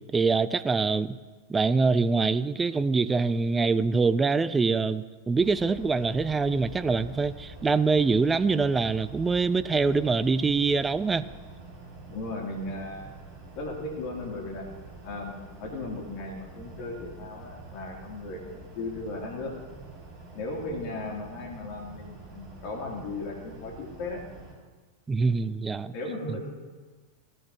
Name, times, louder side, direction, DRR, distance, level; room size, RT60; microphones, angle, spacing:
voice 1, 0.1-1.2 1.5-11.2 25.1-25.9, right 4 dB, 15° right, 15 dB, 0.4 m, -24 dB
sound 1, 5.4-24.5, right 2 dB, 30° right, 4.2 m, -46 dB
voice 2, 12.1-13.1 13.5-14.6 15.0-19.5 20.3-24.2 25.8-26.5, left 2 dB, 45° left, -1 dB, 3.1 m, -36 dB
18.0 x 13.5 x 3.0 m, 1.3 s
figure-of-eight pair, 90°, 0 cm